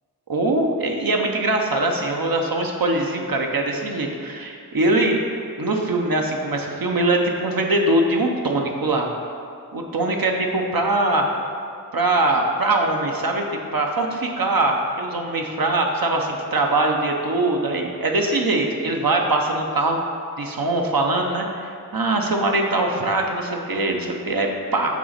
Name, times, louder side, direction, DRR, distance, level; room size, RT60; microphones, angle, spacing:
voice 1, 0.3-5.2 5.6-9.1 9.7-11.3 11.9-20.0 20.4-24.9, right 2 dB, 70° right, 1 dB, 0.8 m, -22 dB
6.6 x 4.1 x 5.1 m, 2.4 s
wide cardioid pair, 40°, 36 cm